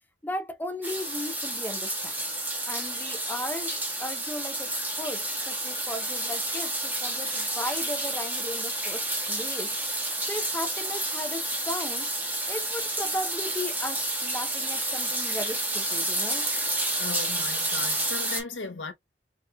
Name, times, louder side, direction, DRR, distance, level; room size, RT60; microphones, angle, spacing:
voice 1, 0.2-2.2 2.7-12.1 12.5-16.5, left 1 dB, 10° left, 0.6 m, -36 dB
sound 1, 0.8-18.4, right 1 dB, 10° right, 1.2 m, -30 dB
voice 2, 17.0-18.9, left 4 dB, 80° left, 1.1 m, -36 dB
4.3 x 3.0 x 2.3 m
head